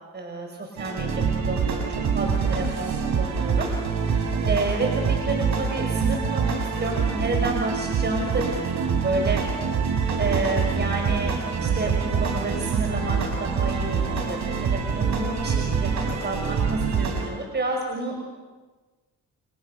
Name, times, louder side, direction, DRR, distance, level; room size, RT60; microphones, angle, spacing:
voice 1, 0.1-1.1 1.4-3.7 4.5-9.4 10.2-18.2, right 2 dB, 35° right, 2 dB, 5.8 m, -30 dB
sound 1, 0.8-17.3, right 5 dB, 70° right, 6.0 m, -25 dB
30.0 x 29.5 x 6.8 m, 1.3 s
cardioid pair, 90°, 30 cm